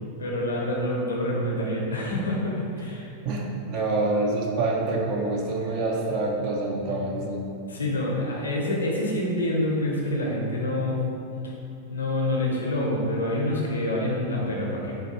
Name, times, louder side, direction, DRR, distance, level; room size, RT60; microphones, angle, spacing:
voice 1, 0.2-3.1 3.7-3.8 6.9-7.1 7.7-11.0 11.4-11.5 11.9-15.0, left 1 dB, 70° left, -3 dB, 0.5 m, -27 dB
voice 2, 3.2-7.5, right 2 dB, 40° right, 0 dB, 0.4 m, -26 dB
3.7 x 2.2 x 2.9 m, 2.7 s
figure-of-eight pair, 90°, 0 cm